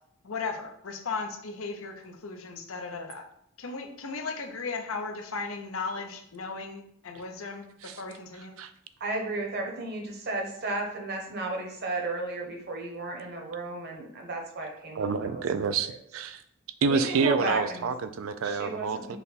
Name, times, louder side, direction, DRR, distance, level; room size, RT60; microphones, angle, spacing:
voice 1, 0.2-3.2 3.6-8.5, left 4 dB, 80° left, 4 dB, 0.7 m, -36 dB
voice 2, 9.0-15.4 15.8-15.9 16.9-17.9 18.4-19.2, right 2 dB, 50° right, 2 dB, 0.9 m, -33 dB
voice 3, 15.0-16.4 16.8-19.2, right 5 dB, 75° right, 11 dB, 0.4 m, -28 dB
5.7 x 2.2 x 4.1 m, 0.70 s
head